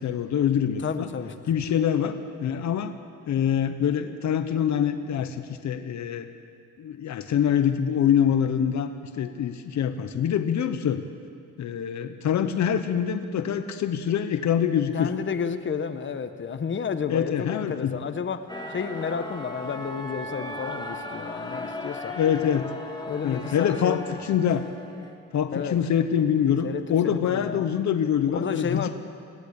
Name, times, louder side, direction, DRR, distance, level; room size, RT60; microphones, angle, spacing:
voice 1, 0.0-1.1 1.5-2.9 3.3-6.3 6.8-8.9 9.1-11.0 11.6-15.1 17.1-17.9 22.1-22.7 23.2-24.7 25.3-28.9, left 8 dB, 65° left, 8 dB, 1.2 m, -25 dB
voice 2, 0.8-1.3 14.9-22.2 23.1-24.2 25.5-25.8 26.6-27.7 28.3-28.9, left 6 dB, 40° left, 8 dB, 1.3 m, -31 dB
sound 1, 18.5-25.1, left 1 dB, 15° left, 2.7 m, -37 dB
20.5 x 17.5 x 8.4 m, 2.3 s
cardioid pair, 90°, 30 cm